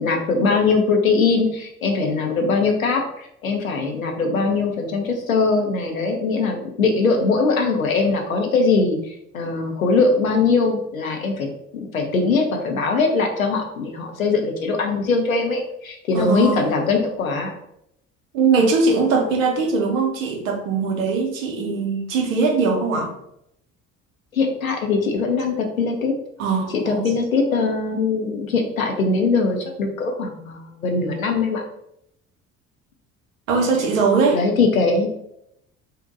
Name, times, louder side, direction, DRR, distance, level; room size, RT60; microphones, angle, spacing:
voice 1, 0.0-11.5 11.9-17.5 24.3-26.2 26.7-31.6 34.3-35.1, left 4 dB, 85° left, 3 dB, 0.5 m, -21 dB
voice 2, 16.1-16.7 18.3-23.1 26.4-27.1 33.5-34.4, right 4 dB, 70° right, 2 dB, 0.7 m, -20 dB
2.6 x 2.1 x 3.7 m, 0.77 s
figure-of-eight pair, 55°, 40 cm